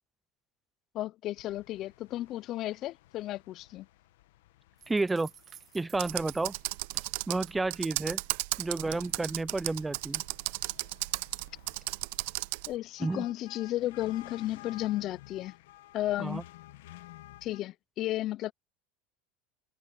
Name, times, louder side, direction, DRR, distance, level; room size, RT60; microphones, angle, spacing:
voice 1, 0.9-3.9 12.7-15.5 15.9-16.4 17.4-18.5, left 14 dB, 45° left, 0.5 m, -33 dB
sound 1, 1.4-17.6, left 16 dB, 85° left, 1.0 m, -55 dB
sound 2, 4.8-8.2 8.5-9.2, right 9 dB, 35° right, 0.8 m, -55 dB
voice 2, 4.9-5.3 5.7-6.6 7.3-8.2 8.6-10.2 13.0-13.3 16.2-16.4, right 3 dB, 10° right, 0.4 m, -31 dB
Computer keyboard, 5.9-12.7, right 22 dB, 75° right, 0.6 m, -35 dB
supercardioid pair, 125°, 0 cm